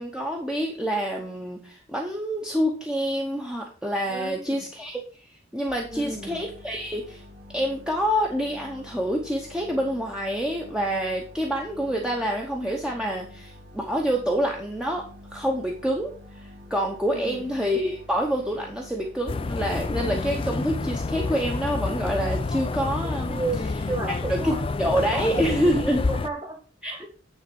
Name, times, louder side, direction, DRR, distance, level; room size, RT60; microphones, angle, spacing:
voice 1, 0.0-7.2 7.5-23.4 24.3-26.0 26.8-27.1, equal, 5° right, 0 dB, 0.9 m, -27 dB
voice 2, 4.1-4.6 5.9-6.4 17.1-17.4 23.3-24.6 25.1-25.7 26.1-26.6 26.8-27.1, right 2 dB, 20° right, 3 dB, 1.5 m, -33 dB
sound 1, 5.7-22.9, left 1 dB, 45° right, 2.0 m, -47 dB
sound 2, 19.3-26.3, left 3 dB, 25° left, 0.3 m, -29 dB
9.3 x 3.9 x 5.3 m, 0.39 s
head